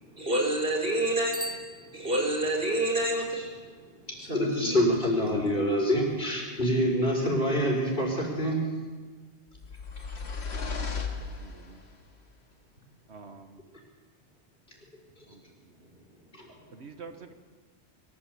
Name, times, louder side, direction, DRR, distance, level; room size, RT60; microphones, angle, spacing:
voice 1, 0.2-1.4 1.9-3.4 4.2-4.9, right 1 dB, 55° right, 4.6 m, -28 dB
Bicycle bell, 1.3-2.6, equal, 5° left, 1.6 m, -40 dB
voice 2, 3.8-8.7 15.2-15.3 16.3-16.7, equal, 50° left, 5.5 m, -27 dB
sound 1, 9.5-12.0, left 5 dB, 70° left, 2.2 m, -35 dB
voice 3, 10.4-11.8 13.1-13.6 15.3-16.0 16.7-17.3, right 4 dB, 75° right, 1.6 m, -48 dB
23.5 x 14.0 x 8.4 m
omnidirectional pair, 1.1 m